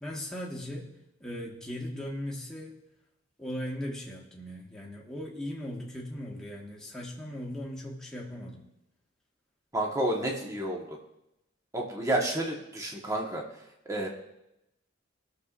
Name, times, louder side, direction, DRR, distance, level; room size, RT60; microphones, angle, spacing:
voice 1, 0.0-0.9 1.2-2.8 3.4-8.6, equal, 5° left, -4 dB, 1.5 m, -38 dB
voice 2, 9.7-10.8 11.7-13.4 13.9-14.1, right 1 dB, 15° right, 0 dB, 1.2 m, -30 dB
19.5 x 6.7 x 2.5 m, 0.88 s
head